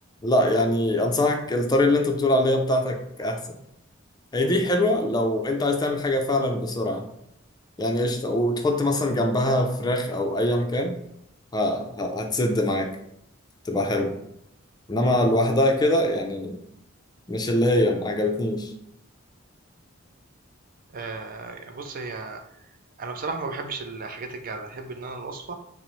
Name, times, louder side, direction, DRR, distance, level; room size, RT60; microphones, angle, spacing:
voice 1, 0.2-3.6 4.3-7.0 7.8-11.0 11.5-12.9 13.6-14.1 14.9-16.6 17.3-18.7, left 1 dB, 20° left, 3 dB, 0.4 m, -23 dB
voice 2, 15.0-15.3 20.9-22.7 23.0-25.5, right 3 dB, 45° right, 5 dB, 0.5 m, -35 dB
5.7 x 2.0 x 3.0 m, 0.78 s
head